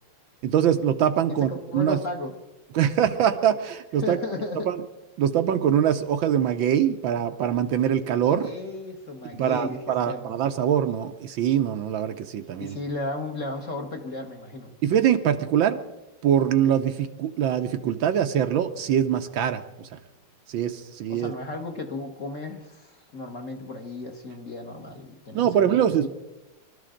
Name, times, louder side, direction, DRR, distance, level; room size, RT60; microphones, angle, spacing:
voice 1, 0.4-2.0 2.7-4.2 4.7-4.8 5.2-8.5 9.4-12.8 14.8-15.8 16.2-20.0 20.5-21.3 25.3-26.1, right 9 dB, 70° right, 8 dB, 1.4 m, -23 dB
voice 2, 1.3-2.3 4.0-4.7 8.4-10.4 12.6-14.8 21.1-26.1, left 2 dB, 40° left, 3 dB, 1.6 m, -34 dB
24.0 x 13.0 x 3.8 m, 0.97 s
omnidirectional pair, 2.4 m